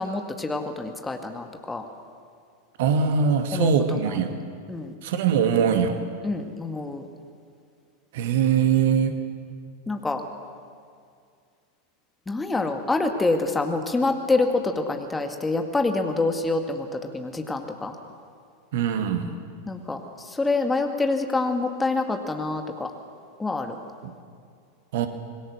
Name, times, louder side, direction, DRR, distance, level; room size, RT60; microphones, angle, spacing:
voice 1, 0.0-1.8 3.5-3.7 4.7-4.9 6.2-7.1 9.9-10.2 12.3-18.0 19.7-20.0 20.3-22.9 23.4-23.8, left 3 dB, 10° left, 5 dB, 1.9 m, -26 dB
voice 2, 2.8-4.3 5.0-6.0 8.1-9.2 18.7-19.4 24.0-24.1 24.9-25.1, right 7 dB, 55° right, 7 dB, 2.0 m, -22 dB
26.0 x 21.5 x 6.4 m, 2.2 s
figure-of-eight pair, 90°, 0 cm